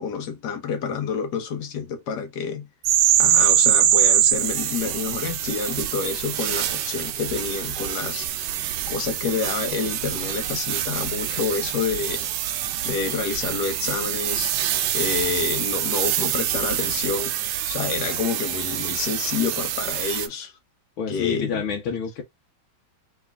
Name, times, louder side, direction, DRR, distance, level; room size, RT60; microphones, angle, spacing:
voice 1, 0.0-2.7 3.2-8.3 8.9-12.5 12.8-14.5 14.9-17.3 17.7-20.5 21.1-21.6, left 6 dB, 60° left, 1.4 m, -28 dB
sound 1, 2.8-20.3, right 10 dB, 75° right, 1.1 m, -24 dB
voice 2, 21.0-22.2, left 6 dB, 80° left, 1.7 m, -28 dB
3.5 x 3.3 x 3.5 m
omnidirectional pair, 2.2 m